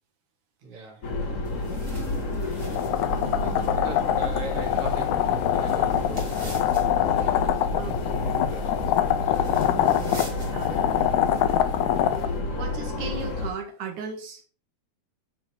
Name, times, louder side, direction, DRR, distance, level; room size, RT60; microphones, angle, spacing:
voice 1, 0.6-1.5 3.4-9.6, right 2 dB, 50° right, 3.1 m, -42 dB
sound 1, 1.0-13.5, left 2 dB, 50° left, 0.9 m, -30 dB
sound 2, 1.4-12.4, right 1 dB, 20° right, 1.9 m, -46 dB
sound 3, 2.6-12.3, left 12 dB, 80° left, 1.9 m, -25 dB
voice 2, 2.9-3.8 7.0-7.3 7.7-8.0 9.7-10.9 12.5-14.5, right 4 dB, 75° right, 3.0 m, -37 dB
13.0 x 4.3 x 3.4 m
omnidirectional pair, 3.5 m